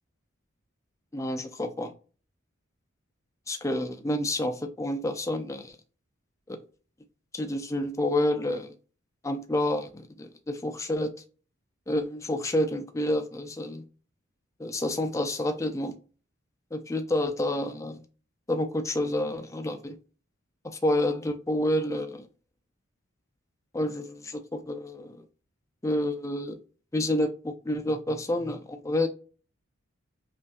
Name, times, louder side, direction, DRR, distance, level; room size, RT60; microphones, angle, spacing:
voice 1, 1.1-1.9 3.5-5.8 6.5-6.6 7.3-8.7 9.2-11.1 11.9-13.8 14.6-15.9 16.7-18.0 18.5-20.0 20.6-22.3 23.7-25.2 25.8-26.6 26.9-29.1, left 1 dB, 15° left, 6 dB, 0.4 m, -29 dB
5.3 x 2.5 x 2.3 m, 0.37 s
head